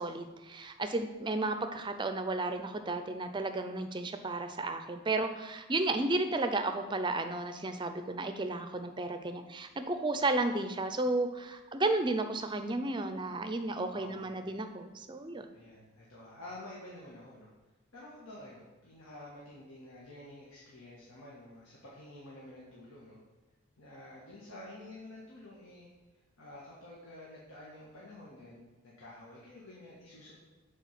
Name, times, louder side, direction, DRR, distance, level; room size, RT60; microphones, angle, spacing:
voice 1, 0.0-15.5, right 2 dB, 20° right, 8 dB, 0.5 m, -33 dB
voice 2, 13.9-14.3 15.5-17.5 17.9-23.2 23.8-25.9 26.4-30.3, left 1 dB, 80° left, -5 dB, 1.6 m, -50 dB
8.2 x 4.4 x 6.0 m, 1.1 s
head